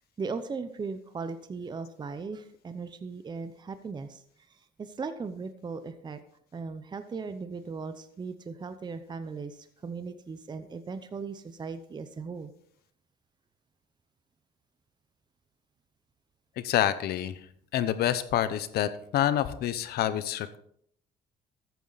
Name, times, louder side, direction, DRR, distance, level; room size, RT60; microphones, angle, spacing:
voice 1, 0.2-6.2 6.5-12.5, right 4 dB, 25° right, 10 dB, 0.8 m, -38 dB
voice 2, 16.6-17.4 17.7-20.6, left 11 dB, 70° left, 13 dB, 0.9 m, -27 dB
13.5 x 9.2 x 4.1 m, 0.67 s
cardioid pair, 110°, 17 cm